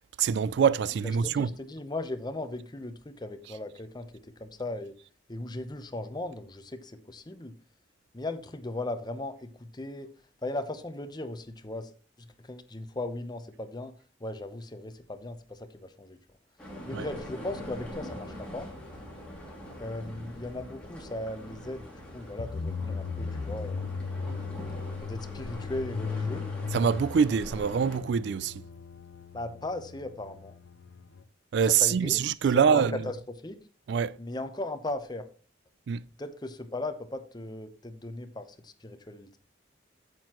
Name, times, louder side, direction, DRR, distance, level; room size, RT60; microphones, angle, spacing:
voice 1, 0.2-1.5 16.9-17.1 26.7-28.5 31.5-33.0 33.9-34.2 35.9-36.0, right 7 dB, 60° right, 0.3 m, -24 dB
voice 2, 1.0-4.1 4.4-4.9 5.3-7.5 8.1-10.1 10.4-11.9 12.2-13.9 14.2-16.2 16.9-18.7 19.8-23.9 25.0-26.5 29.3-30.5 31.8-32.2 32.5-33.2 33.4-33.6 34.2-35.3 36.2-39.4, left 2 dB, 20° left, 0.8 m, -37 dB
sound 1, 16.6-28.0, left 1 dB, 5° left, 2.5 m, -43 dB
sound 2, 22.4-31.2, left 5 dB, 85° left, 0.5 m, -37 dB
9.0 x 7.7 x 3.0 m
head